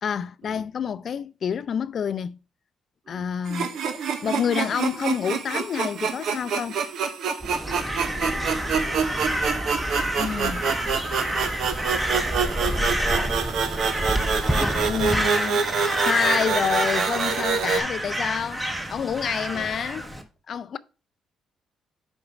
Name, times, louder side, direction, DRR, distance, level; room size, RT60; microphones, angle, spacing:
voice 1, 0.0-2.4 3.1-3.7 4.2-6.8 10.2-10.6 14.6-15.6 16.0-20.1 20.5-20.8, left 7 dB, 55° left, 0.4 m, -28 dB
sound 1, 3.5-17.8, right 6 dB, 75° right, 0.9 m, -27 dB
sound 2, 7.4-15.3, equal, ahead, 0.7 m, -31 dB
Crow, 7.5-20.2, right 1 dB, 15° right, 1.4 m, -29 dB
voice 2, 8.1-9.9 10.3-10.9 11.9-13.3 19.5-19.7, right 3 dB, 50° right, 1.8 m, -42 dB
5.2 x 4.9 x 5.8 m
cardioid pair, 90°, 0 cm